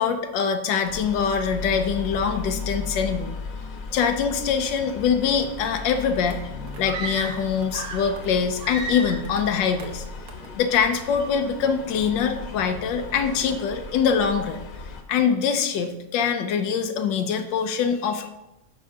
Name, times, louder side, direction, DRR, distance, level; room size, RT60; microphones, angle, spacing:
voice 1, 0.0-3.3 3.9-6.4 6.8-10.0 10.5-14.6 15.1-18.3, left 6 dB, 90° left, 6 dB, 1.4 m, -24 dB
sound 1, 0.8-15.0, left 4 dB, 55° left, 1.2 m, -36 dB
sound 2, 5.8-5.9 6.3-6.4 6.7-6.8 7.2-7.3 7.6-7.9 8.2-8.4 8.7-8.8 9.2-9.4 9.8-10.0 10.3-10.5, right 5 dB, 90° right, 1.7 m, -46 dB
sound 3, 6.8-8.2 8.6-9.4, right 2 dB, 70° right, 1.9 m, -33 dB
6.3 x 5.7 x 5.4 m, 0.92 s
omnidirectional pair, 2.0 m